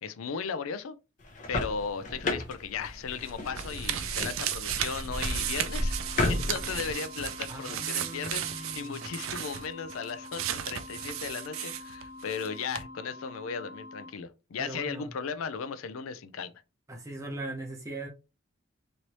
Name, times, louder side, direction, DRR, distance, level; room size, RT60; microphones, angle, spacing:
voice 1, 0.0-1.0 1.5-16.5, left 6 dB, 80° left, 0.4 m, -36 dB
sound 1, 1.2-6.9, left 2 dB, 35° left, 0.7 m, -33 dB
sound 2, 2.8-12.5 12.7-12.8, right 10 dB, 75° right, 0.4 m, -35 dB
sound 3, 5.1-14.1, left 2 dB, 65° left, 1.2 m, -46 dB
voice 2, 7.5-9.0 14.6-15.1 16.9-18.1, right 2 dB, 15° right, 0.6 m, -40 dB
3.1 x 2.7 x 2.9 m
head